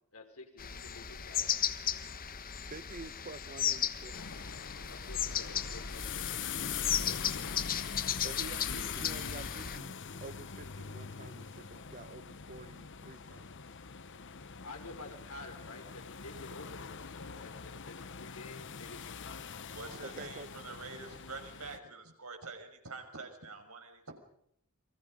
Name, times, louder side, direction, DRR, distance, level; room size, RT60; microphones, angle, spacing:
voice 1, 0.1-2.0 4.9-6.7 14.6-20.2, left 2 dB, 80° left, 5.2 m, -51 dB
sound 1, 0.6-9.8, left 9 dB, 40° left, 1.3 m, -35 dB
voice 2, 2.7-4.5 8.2-13.5 20.0-20.5, right 3 dB, 40° right, 1.4 m, -48 dB
sound 2, 4.1-21.8, left 7 dB, 55° left, 1.0 m, -43 dB
voice 3, 19.7-24.1, right 4 dB, 85° right, 6.2 m, -46 dB
29.5 x 23.5 x 5.2 m
head